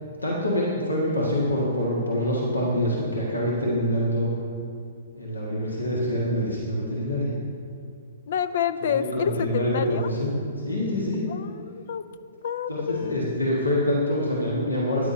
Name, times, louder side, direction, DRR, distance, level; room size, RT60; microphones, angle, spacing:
voice 1, 0.2-4.3 5.2-7.4 8.9-10.3 10.6-11.2 12.7-15.1, equal, 80° left, -4 dB, 1.7 m, -25 dB
voice 2, 8.3-10.1 11.3-12.0 12.4-13.2, left 8 dB, 55° left, 13 dB, 0.5 m, -28 dB
13.0 x 10.0 x 2.8 m, 2.4 s
figure-of-eight pair, 115°, 0 cm